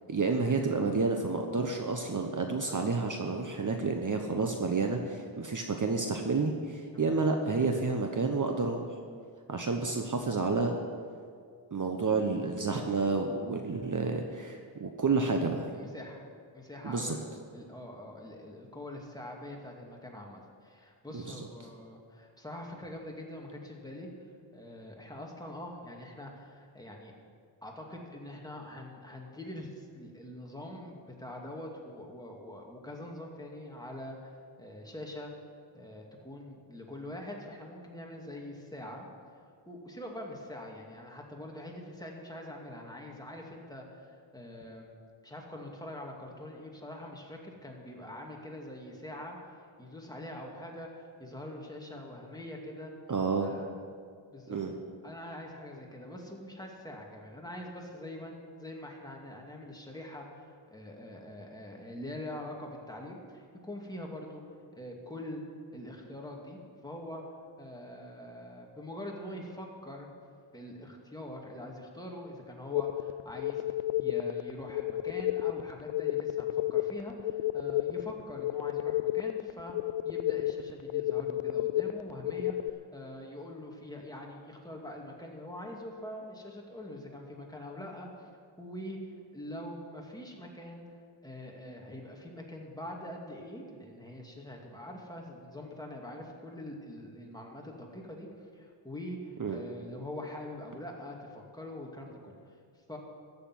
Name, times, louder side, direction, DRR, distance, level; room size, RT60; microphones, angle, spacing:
voice 1, 0.1-8.9 9.5-10.8 11.7-15.7 16.8-17.2 21.1-21.2 53.1-53.5 54.5-54.7 99.4-99.6, right 4 dB, 40° right, 3 dB, 1.1 m, -30 dB
voice 2, 15.7-16.2 16.5-17.2 17.5-24.1 24.5-27.1 27.6-35.3 35.7-39.1 39.7-44.9 45.2-49.4 49.8-52.9 53.4-53.7 54.3-54.6 55.0-64.4 64.7-65.4 65.7-67.2 67.6-70.1 70.5-79.8 80.0-88.3 88.6-89.0 89.3-90.8 91.2-102.3 102.9-103.0, left 1 dB, 10° left, -1 dB, 2.4 m, -44 dB
sound 1, 72.7-82.7, left 14 dB, 80° left, 0.5 m, -32 dB
14.5 x 6.9 x 9.5 m, 2.2 s
wide cardioid pair, 85°, 49 cm